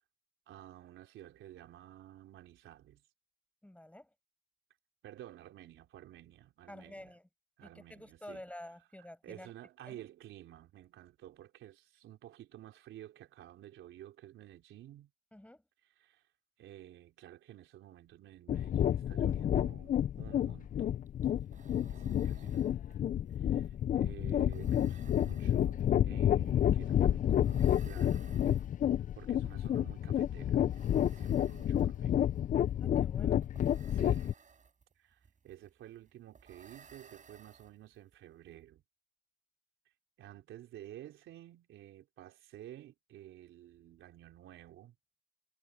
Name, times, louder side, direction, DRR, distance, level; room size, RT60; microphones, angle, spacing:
voice 1, 0.5-3.0 5.0-7.1 7.6-8.4 9.2-15.1 16.0-16.2 16.6-21.0 21.6-22.7 23.3-28.4 29.2-32.1 33.9-34.3 35.0-38.8 40.2-45.0, right 13 dB, 85° right, 4.0 m, -52 dB
voice 2, 3.6-4.1 6.7-7.3 7.6-9.5 9.9-10.0 15.3-15.6 32.8-33.5, left 1 dB, 5° left, 6.9 m, -50 dB
sound 1, 18.5-34.3, left 10 dB, 40° left, 0.4 m, -30 dB
sound 2, 20.8-20.9 21.1-38.1, right 6 dB, 40° right, 4.9 m, -61 dB
cardioid pair, 90°, 20 cm